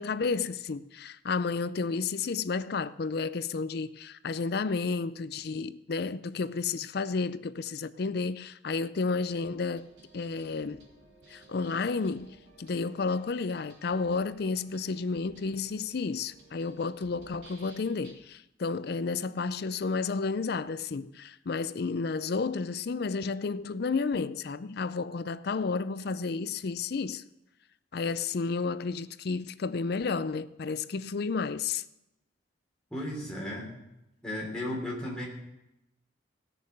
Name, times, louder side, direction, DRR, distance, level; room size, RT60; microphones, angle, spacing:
voice 1, 0.0-9.9 10.1-10.9 11.3-27.2 27.9-31.8, left 4 dB, 55° left, 0.5 m, -31 dB
sound 1, 9.1-18.1, right 2 dB, 65° right, 3.6 m, -57 dB
voice 2, 32.9-33.8 34.2-35.3, left 1 dB, 5° left, 3.3 m, -35 dB
17.5 x 6.8 x 6.6 m
head